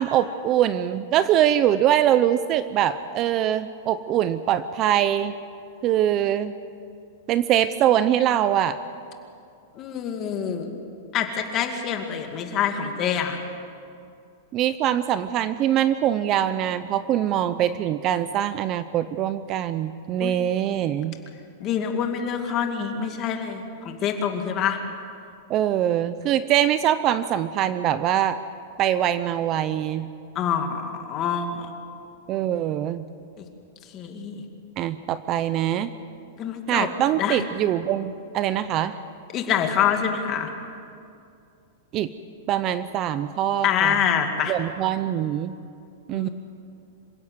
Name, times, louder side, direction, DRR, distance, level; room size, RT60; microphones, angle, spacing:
voice 1, 0.0-5.3 5.8-6.5 7.3-8.8 14.5-21.2 25.5-28.4 28.8-30.1 32.3-33.0 34.8-35.9 36.7-39.0 41.9-42.1 42.5-44.0 44.5-45.6 46.1-46.3, right 11 dB, 30° right, 13 dB, 0.6 m, -23 dB
voice 2, 9.8-10.7 11.1-13.4 20.2-20.4 21.6-24.8 30.3-31.7 33.4-33.5 33.9-34.4 36.4-36.9 37.2-37.4 39.3-40.5 43.6-44.5 46.1-46.3, left 8 dB, 25° left, 4 dB, 2.3 m, -26 dB
27.0 x 16.5 x 8.0 m, 2.5 s
supercardioid pair, 165°, 0 cm